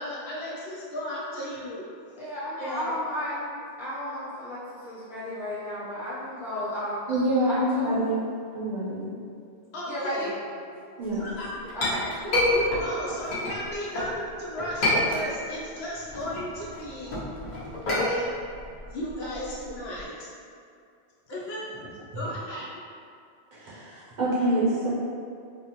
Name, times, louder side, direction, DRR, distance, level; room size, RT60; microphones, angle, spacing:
voice 1, 0.0-1.8 2.6-2.9 9.7-10.3 11.2-17.2 17.9-18.3 18.9-20.3 21.3-22.8, equal, 80° left, -6 dB, 0.9 m, -35 dB
voice 2, 2.2-7.1 7.4-8.0 9.9-10.6 11.1-11.2 11.7-12.0, equal, 5° right, -10 dB, 0.5 m, -33 dB
voice 3, 7.1-8.2 8.5-9.1 11.0-11.2 23.5-24.9, right 1 dB, 55° right, -7 dB, 0.7 m, -26 dB
Chink clink, 11.3-14.1 14.6-15.6 16.0-20.0, left 1 dB, 50° left, 0.8 m, -28 dB
3.4 x 2.1 x 2.9 m, 2.3 s
omnidirectional pair, 1.0 m